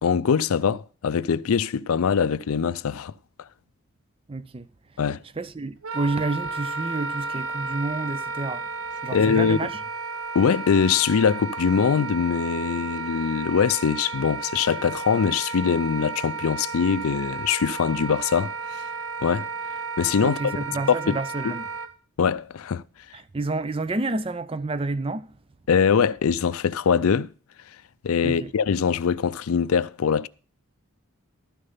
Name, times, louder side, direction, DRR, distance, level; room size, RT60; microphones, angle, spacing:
voice 1, 0.0-3.1 5.0-5.2 9.1-9.6 10.3-18.8 19.2-19.5 20.0-20.6 20.9-21.2 21.4-21.5 22.2-22.8 25.7-27.3 28.0-30.3, left 6 dB, 75° left, 0.4 m, -22 dB
voice 2, 4.3-4.7 5.4-8.6 9.0-9.7 20.2-21.7 23.1-25.3 28.2-28.5, right 3 dB, 25° right, 0.4 m, -29 dB
Wind instrument woodwind instrument, 5.8-21.9, right 4 dB, 75° right, 1.0 m, -33 dB
12.5 x 6.6 x 5.6 m
head